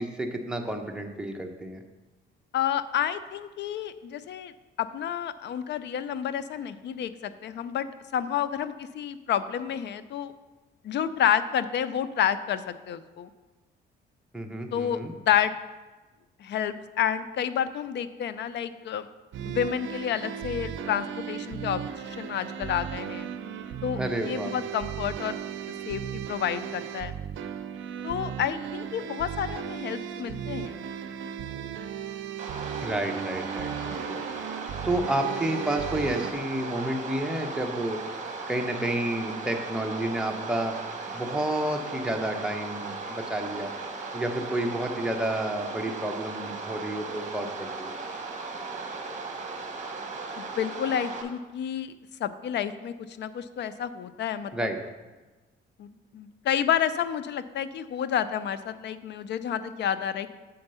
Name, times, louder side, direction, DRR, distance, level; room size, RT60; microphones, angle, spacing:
voice 1, 0.0-1.8 14.3-15.1 24.0-24.5 32.8-34.2 34.8-38.0 38.5-40.8 41.1-43.7 44.1-47.9 54.5-54.8, right 1 dB, 5° right, 3 dB, 0.9 m, -30 dB
voice 2, 2.5-4.5 4.8-10.3 10.8-13.3 14.7-15.5 16.4-19.1 19.4-23.3 23.8-25.4 25.9-27.2 28.0-30.8 50.4-51.9 52.2-54.7 55.8-60.4, left 9 dB, 60° left, 13 dB, 0.5 m, -30 dB
sound 1, 19.3-36.3, right 9 dB, 75° right, 0.5 m, -36 dB
sound 2, 32.4-51.2, right 4 dB, 35° right, 1.1 m, -37 dB
7.7 x 4.4 x 5.5 m, 1.2 s
cardioid pair, 90°, 20 cm